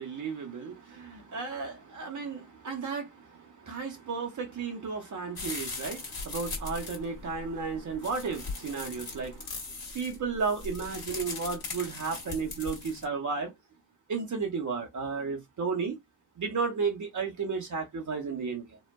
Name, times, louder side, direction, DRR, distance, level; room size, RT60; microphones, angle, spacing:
voice 1, 0.0-9.5 9.9-13.5 14.1-16.0 16.4-18.8, right 5 dB, 40° right, 0.8 m, -33 dB
sound 1, 5.4-13.0, left 3 dB, 45° left, 1.5 m, -39 dB
2.7 x 2.1 x 2.2 m
hypercardioid pair, 45°, 49 cm